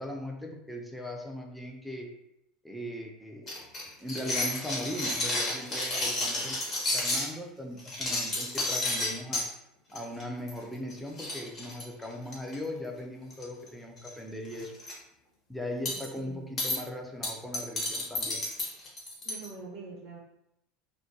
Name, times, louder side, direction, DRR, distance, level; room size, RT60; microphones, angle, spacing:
voice 1, 0.0-2.1 2.6-3.5 4.0-6.6 6.9-9.5 9.9-14.7 15.5-18.5, left 1 dB, ahead, 0 dB, 0.4 m, -39 dB
sound 1, 3.5-7.3 7.8-9.5 9.9-10.2 10.5-10.6 10.9-11.0 11.2-12.5 13.3-13.7 14.0-14.1 14.5-14.9 15.9-16.1 16.6-16.8 17.2-19.5, left 2 dB, 35° left, 0.8 m, -31 dB
voice 2, 15.8-16.5 19.2-20.2, right 4 dB, 65° right, -3 dB, 0.6 m, -45 dB
2.2 x 2.1 x 2.6 m, 0.82 s
supercardioid pair, 120°, 0 cm